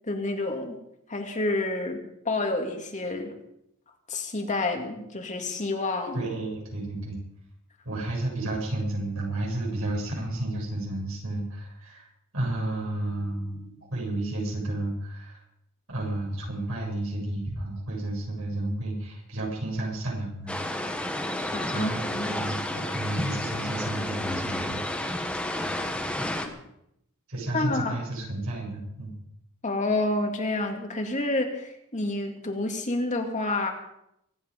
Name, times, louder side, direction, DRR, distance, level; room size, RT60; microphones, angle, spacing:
voice 1, 0.1-0.8 1.1-3.3 4.1-6.3 21.5-22.3 27.5-28.0 29.6-33.7, left 2 dB, 35° left, 3 dB, 2.2 m, -29 dB
voice 2, 6.1-7.2 7.8-12.1 12.3-15.4 15.9-20.5 21.4-24.8 27.3-29.2, right 1 dB, 75° right, -3 dB, 7.3 m, -32 dB
sound 1, 20.5-26.5, left 1 dB, 5° left, 1.5 m, -31 dB
24.5 x 9.9 x 5.3 m, 0.79 s
head